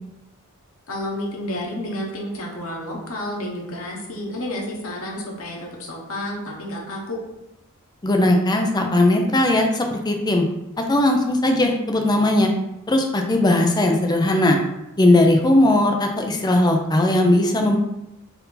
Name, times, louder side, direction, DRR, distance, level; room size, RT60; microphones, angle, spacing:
voice 1, 0.9-7.2, left 1 dB, 90° left, -1 dB, 1.2 m, -30 dB
voice 2, 8.0-10.4 10.9-12.5 12.9-14.6 15.0-17.8, left 1 dB, 20° left, 3 dB, 0.5 m, -18 dB
4.3 x 2.7 x 3.9 m, 0.89 s
head